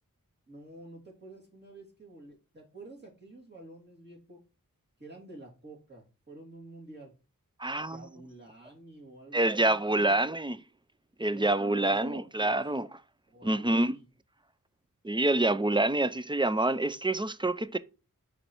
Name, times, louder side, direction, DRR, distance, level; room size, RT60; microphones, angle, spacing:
voice 1, 0.5-4.4 5.0-7.1 7.9-10.2 11.3-12.6 13.3-14.0, right 2 dB, 30° right, 2.8 m, -49 dB
voice 2, 7.6-8.0 9.3-10.6 11.2-12.9 13.4-13.9 15.0-17.8, right 2 dB, 15° right, 0.5 m, -27 dB
5.2 x 4.3 x 4.5 m
wide cardioid pair, 40°, 35 cm